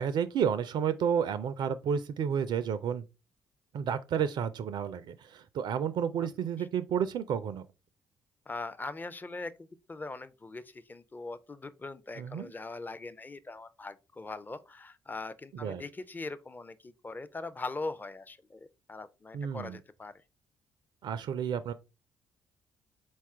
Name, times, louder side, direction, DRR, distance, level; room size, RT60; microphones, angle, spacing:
voice 1, 0.0-3.0 3.7-7.6 12.2-12.5 15.5-15.8 19.3-19.8 21.0-21.7, right 8 dB, 55° right, 0.4 m, -31 dB
voice 2, 8.5-20.1, left 3 dB, 20° left, 0.5 m, -41 dB
4.2 x 2.3 x 4.6 m
figure-of-eight pair, 40°, 9 cm